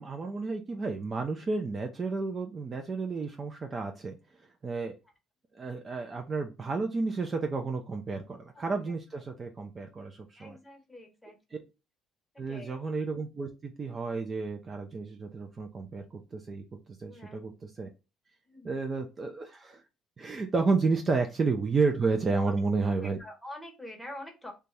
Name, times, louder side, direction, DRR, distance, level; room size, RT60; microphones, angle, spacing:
voice 1, 0.0-4.2 4.6-4.9 5.5-10.6 12.4-16.6 17.0-17.9 18.6-19.8 20.2-23.2, right 4 dB, 30° right, 5 dB, 0.4 m, -31 dB
voice 2, 8.5-9.2 10.4-11.6 12.5-12.8 17.1-17.4 18.5-18.8 22.3-22.5 22.9-24.5, left 1 dB, 5° left, 2 dB, 0.9 m, -46 dB
2.6 x 2.2 x 3.1 m, 0.27 s
cardioid pair, 115°, 0 cm